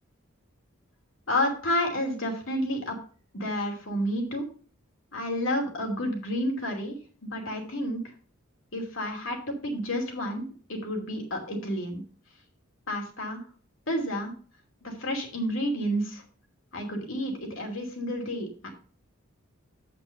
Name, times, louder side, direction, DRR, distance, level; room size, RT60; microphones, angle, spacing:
voice 1, 1.3-3.0 3.3-4.4 5.1-7.0 7.2-8.0 8.7-12.0 12.9-13.4 13.9-14.3 14.8-16.2 16.7-18.7, equal, 70° left, 1 dB, 2.7 m, -30 dB
7.4 x 6.0 x 6.5 m, 0.41 s
head